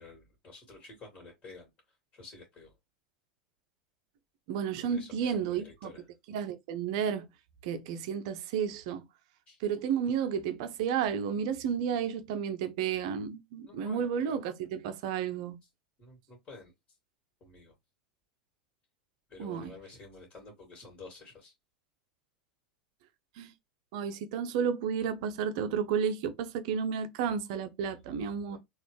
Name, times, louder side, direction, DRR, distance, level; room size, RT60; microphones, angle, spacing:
voice 1, 0.0-1.7 2.1-2.7 4.9-6.0 9.5-9.6 13.6-14.4 16.0-16.7 17.4-17.7 19.3-21.5 28.5-28.6, left 3 dB, 30° left, 2.1 m, -50 dB
voice 2, 4.5-5.9 6.3-7.3 7.6-9.0 9.6-15.6 19.4-19.7 23.4-23.5 23.9-28.6, right 7 dB, 55° right, 0.6 m, -32 dB
4.0 x 2.5 x 3.1 m
figure-of-eight pair, 80°, 4 cm